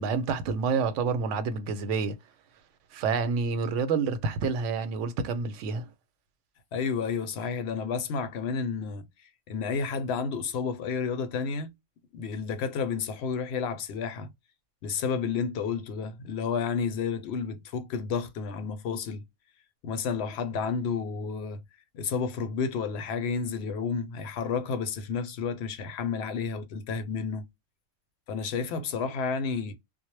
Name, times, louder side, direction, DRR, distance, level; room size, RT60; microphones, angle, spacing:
voice 1, 0.0-2.2 2.9-5.9, right 5 dB, 80° right, 0.9 m, -28 dB
voice 2, 6.7-9.1 9.5-11.7 12.1-14.3 14.8-19.2 19.8-21.6 21.9-27.5 28.3-29.7, left 5 dB, 65° left, 0.8 m, -31 dB
2.1 x 2.0 x 3.0 m
omnidirectional pair, 1.3 m